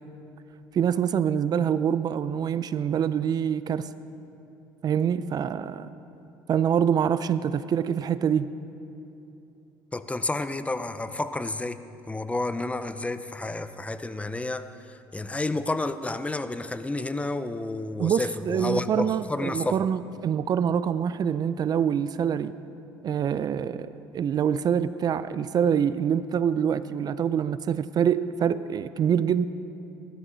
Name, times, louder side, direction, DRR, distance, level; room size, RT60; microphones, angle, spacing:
voice 1, 0.7-3.9 4.8-5.9 6.5-8.5 18.0-22.5 23.0-29.5, right 8 dB, 45° right, 15 dB, 0.5 m, -25 dB
voice 2, 9.9-11.8 12.1-19.8, left 2 dB, 15° left, 12 dB, 0.6 m, -30 dB
19.5 x 12.5 x 4.0 m, 2.8 s
supercardioid pair, 75°, 9 cm